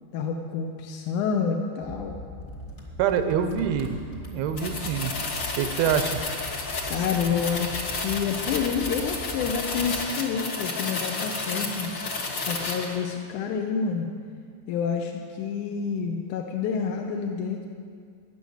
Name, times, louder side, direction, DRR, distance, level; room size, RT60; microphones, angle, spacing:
voice 1, 0.1-2.2 6.9-11.9 12.4-14.1 14.7-17.7, left 6 dB, 75° left, 2 dB, 2.1 m, -28 dB
sound 1, 1.8-10.1, equal, 30° left, 1.3 m, -41 dB
voice 2, 3.0-4.0 4.3-5.1 5.5-6.2, right 8 dB, 90° right, 8 dB, 2.8 m, -25 dB
sound 2, 4.6-13.0, left 3 dB, 50° left, 1.4 m, -31 dB
13.5 x 10.0 x 7.9 m, 2.1 s
omnidirectional pair, 4.2 m